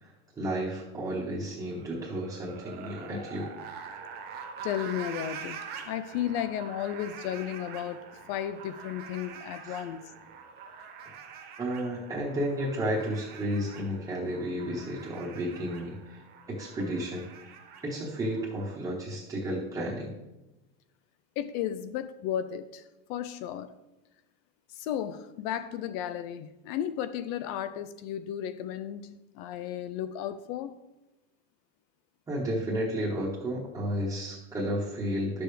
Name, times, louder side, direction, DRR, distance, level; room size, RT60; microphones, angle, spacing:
voice 1, 0.0-3.5 9.6-9.8 11.6-16.2 16.5-17.5 17.8-20.1 32.3-35.4, equal, 10° right, 1.3 m, -32 dB
sound 1, 1.7-18.7, right 6 dB, 30° right, 0.9 m, -45 dB
voice 2, 4.6-5.6 5.9-8.0 8.3-10.1 21.4-22.8 23.1-23.7 24.8-30.7, left 10 dB, 40° left, 0.4 m, -34 dB
10.5 x 6.8 x 3.3 m
supercardioid pair, 170°, 30 cm